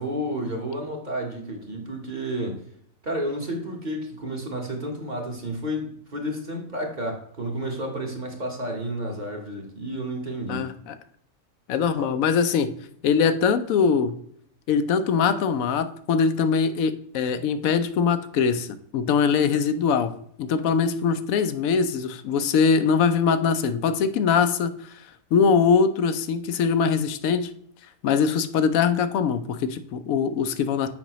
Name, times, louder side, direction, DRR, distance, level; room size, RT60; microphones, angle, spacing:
voice 1, 0.0-2.6 3.0-10.7 12.0-12.1, equal, 35° right, 1 dB, 1.2 m, -31 dB
voice 2, 10.5-10.9 11.7-12.7 13.0-14.1 14.7-18.7 18.9-24.7 25.3-27.5 28.0-30.9, left 6 dB, 85° left, 11 dB, 1.0 m, -22 dB
7.4 x 5.1 x 3.0 m, 0.68 s
omnidirectional pair, 1.4 m